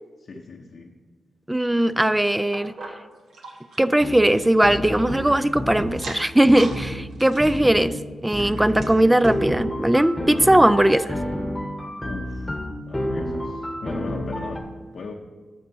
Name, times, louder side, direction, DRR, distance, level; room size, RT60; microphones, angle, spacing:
voice 1, 0.2-0.9 12.0-12.6 12.9-15.1, left 4 dB, 60° left, 1 dB, 0.7 m, -38 dB
voice 2, 1.5-2.7 3.8-8.0 8.2-11.2, right 1 dB, 10° right, 14 dB, 0.3 m, -19 dB
sound 1, 2.5-5.5 5.9-6.8 7.1-9.5 9.9-10.0 10.3-10.4 11.1-11.2, right 3 dB, 85° right, 1.2 m, -42 dB
sound 2, 4.0-4.2 4.6-6.0 6.5-6.9 7.4-7.9 8.3-14.6, left 1 dB, 10° left, 1.0 m, -30 dB
12.5 x 6.6 x 2.7 m, 1.4 s
cardioid pair, 85°, 0 cm